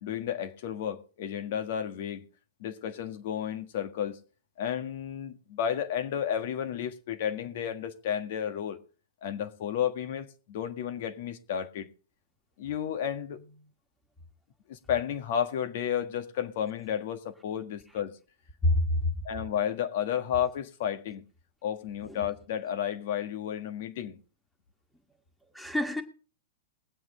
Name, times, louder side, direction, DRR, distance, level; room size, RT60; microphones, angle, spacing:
voice 1, 0.0-2.2 2.6-4.2 4.6-8.8 9.2-11.9 12.6-13.6 14.7-18.2 19.2-21.2 21.6-24.2, left 9 dB, 60° left, 1.6 m, -32 dB
voice 2, 18.6-19.0 22.1-22.2 25.5-26.0, left 1 dB, ahead, 1.9 m, -26 dB
21.0 x 8.0 x 3.8 m
hypercardioid pair, 120°, 0 cm